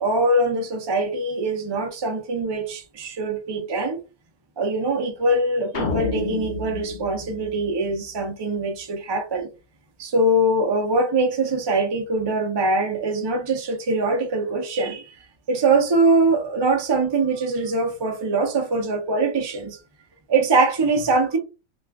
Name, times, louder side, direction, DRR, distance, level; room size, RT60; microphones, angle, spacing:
voice 1, 0.0-4.0 4.6-9.5 10.0-19.8 20.3-21.4, right 2 dB, 40° right, 0.4 m, -23 dB
sound 1, 5.7-8.2, left 4 dB, 80° left, 0.4 m, -30 dB
2.4 x 2.4 x 3.4 m
omnidirectional pair, 1.4 m